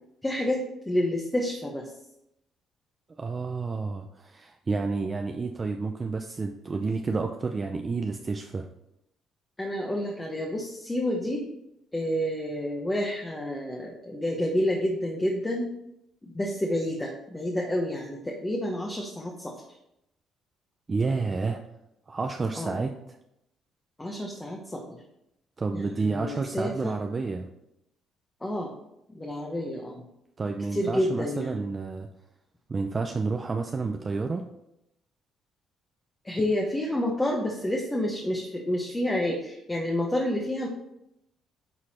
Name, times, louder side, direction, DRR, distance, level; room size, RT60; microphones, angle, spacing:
voice 1, 0.2-1.9 9.6-11.5 11.9-15.7 16.2-19.6 22.6-22.8 24.0-25.0 25.7-27.0 28.4-28.7 29.1-30.0 30.7-31.6 36.2-40.7, left 1 dB, 15° left, -1 dB, 1.2 m, -29 dB
voice 2, 3.2-8.7 20.9-21.6 22.1-22.9 25.6-27.5 30.4-32.1 32.7-34.4, right 4 dB, 30° right, 5 dB, 0.6 m, -30 dB
9.8 x 4.1 x 4.3 m, 0.82 s
cardioid pair, 100°, 0 cm